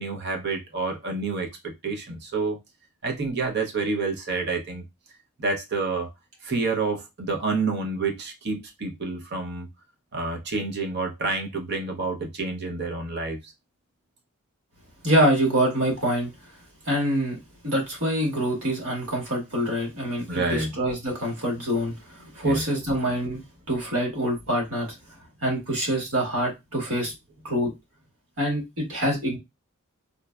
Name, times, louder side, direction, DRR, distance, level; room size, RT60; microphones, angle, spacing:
voice 1, 0.0-2.6 3.0-4.8 5.4-6.1 6.4-9.7 10.1-13.5 20.3-20.7 22.4-22.6, right 3 dB, 50° right, 0.7 m, -28 dB
voice 2, 15.0-16.3 16.8-17.4 17.6-23.4 23.7-24.9 25.4-27.1 27.4-27.7 28.4-29.4, equal, 85° right, 1.5 m, -25 dB
3.8 x 2.1 x 2.2 m
head